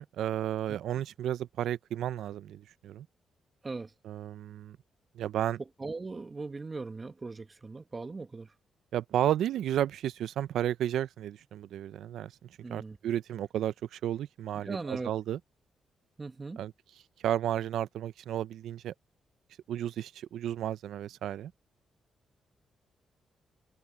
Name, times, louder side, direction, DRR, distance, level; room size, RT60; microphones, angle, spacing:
voice 1, 0.0-3.1 4.0-4.8 5.2-5.6 8.9-12.3 12.7-15.4 16.6-16.7 17.2-18.9 19.7-21.5, right 11 dB, 85° right, 0.4 m, -32 dB
voice 2, 5.8-8.5 12.6-13.0 14.6-15.1 16.2-16.6, right 3 dB, 30° right, 1.1 m, -39 dB
cardioid pair, 90°, 0 cm